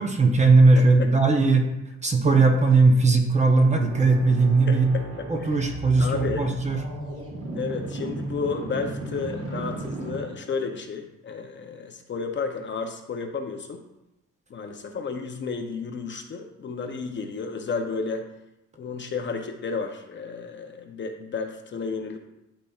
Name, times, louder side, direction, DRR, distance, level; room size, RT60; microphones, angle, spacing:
voice 1, 0.0-1.6 2.0-4.9 5.3-6.8, right 3 dB, 20° right, 3 dB, 0.6 m, -19 dB
voice 2, 0.8-1.3 4.7-5.6 6.0-6.5 7.5-13.8 14.5-18.3 18.8-22.2, left 5 dB, 35° left, 4 dB, 0.6 m, -32 dB
sound 1, 3.8-10.7, right 1 dB, 45° right, 1.2 m, -35 dB
11.5 x 4.1 x 2.3 m, 0.91 s
wide cardioid pair, 170°, 31 cm